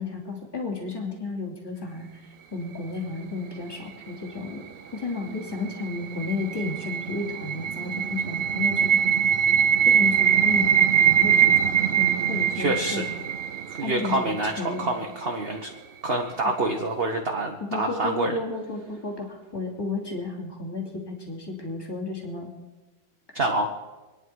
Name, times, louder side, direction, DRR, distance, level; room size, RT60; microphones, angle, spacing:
voice 1, 0.0-2.2 2.5-4.6 4.9-9.0 9.8-13.1 13.8-14.8 17.6-22.5, left 3 dB, 10° left, -1 dB, 2.7 m, -33 dB
sound 1, 5.5-14.5, right 8 dB, 85° right, 0.5 m, -22 dB
voice 2, 12.5-13.0 13.7-15.7 16.0-18.4 23.3-23.7, right 2 dB, 35° right, 1 dB, 1.3 m, -27 dB
27.0 x 10.0 x 4.8 m, 1.2 s
omnidirectional pair, 2.0 m